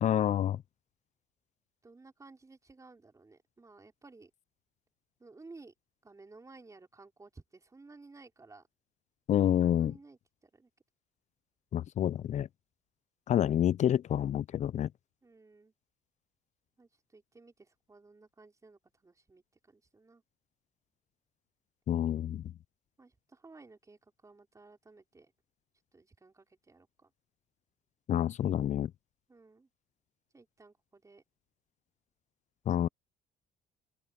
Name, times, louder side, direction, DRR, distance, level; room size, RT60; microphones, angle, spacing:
voice 1, 0.0-0.6 9.3-10.0 11.7-12.5 13.3-14.9 21.9-22.5 28.1-28.9 32.7-32.9, left 11 dB, 45° left, 0.4 m, -28 dB
voice 2, 1.8-4.3 5.2-5.7 6.0-8.6 9.6-10.7 15.2-15.7 16.8-20.2 23.0-25.3 25.9-27.1 29.3-29.7 30.3-31.2, right 3 dB, 20° right, 4.7 m, -56 dB
open air
cardioid pair, 110°, 17 cm